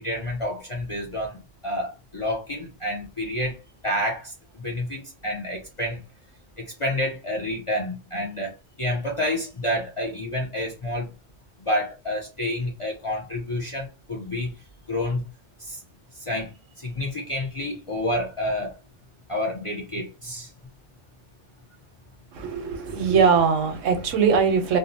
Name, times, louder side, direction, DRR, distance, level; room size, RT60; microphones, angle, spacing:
voice 1, 0.0-6.0 6.6-11.1 11.6-14.6 14.9-15.2 15.6-15.8 16.1-18.8 19.3-20.5, left 1 dB, 40° left, 0.4 m, -29 dB
voice 2, 22.3-24.8, right 6 dB, 90° right, 1.0 m, -21 dB
2.6 x 2.0 x 2.6 m
omnidirectional pair, 1.3 m